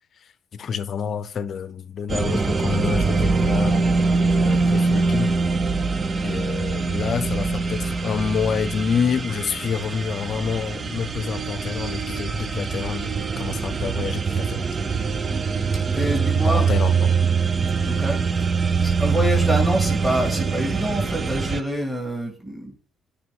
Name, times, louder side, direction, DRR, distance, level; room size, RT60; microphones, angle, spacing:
voice 1, 0.5-3.9 4.4-5.3 6.2-14.7 16.5-17.2, left 6 dB, 50° left, 0.6 m, -28 dB
sound 1, 2.1-21.6, right 4 dB, 30° right, 0.6 m, -23 dB
voice 2, 15.9-16.7 17.9-18.5 18.8-22.7, equal, 10° right, 2.4 m, -26 dB
9.5 x 3.5 x 3.7 m
supercardioid pair, 80°, 0 cm